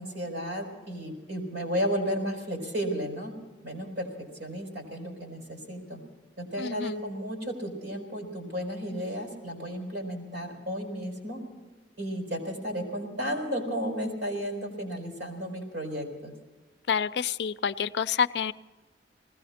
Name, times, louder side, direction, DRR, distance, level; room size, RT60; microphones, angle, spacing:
voice 1, 0.0-3.4 3.6-4.1 4.4-6.0 6.4-11.4 12.0-16.3, equal, 75° right, 1 dB, 4.6 m, -33 dB
voice 2, 6.6-6.9 16.9-18.5, left 7 dB, 65° left, 14 dB, 0.4 m, -28 dB
19.5 x 16.5 x 4.3 m, 1.3 s
head